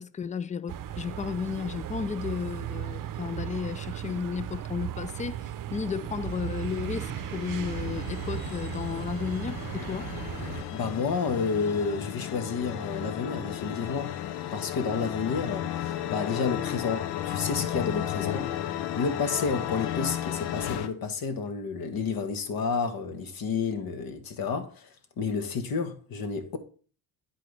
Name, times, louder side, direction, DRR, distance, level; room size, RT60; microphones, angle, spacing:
voice 1, 0.0-10.1, left 6 dB, 20° left, 0.4 m, -33 dB
sound 1, 0.7-10.6, right 11 dB, 50° right, 0.7 m, -36 dB
sound 2, 6.3-20.9, left 11 dB, 75° left, 0.7 m, -34 dB
voice 2, 10.5-14.2 14.5-18.5 18.9-26.6, left 5 dB, 60° left, 1.4 m, -30 dB
10.0 x 4.0 x 3.3 m
supercardioid pair, 60°, 40 cm